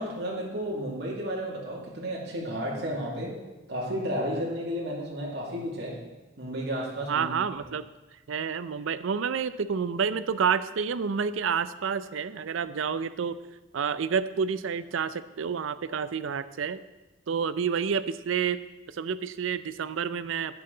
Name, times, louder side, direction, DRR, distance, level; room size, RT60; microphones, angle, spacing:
voice 1, 0.0-3.4 3.7-6.0 6.4-7.3, equal, 55° right, -4 dB, 2.4 m, -32 dB
voice 2, 7.1-7.8 8.3-13.4 13.7-16.8 17.3-18.6 18.9-20.6, right 6 dB, 80° right, 14 dB, 0.5 m, -29 dB
10.5 x 8.7 x 3.9 m, 1.1 s
head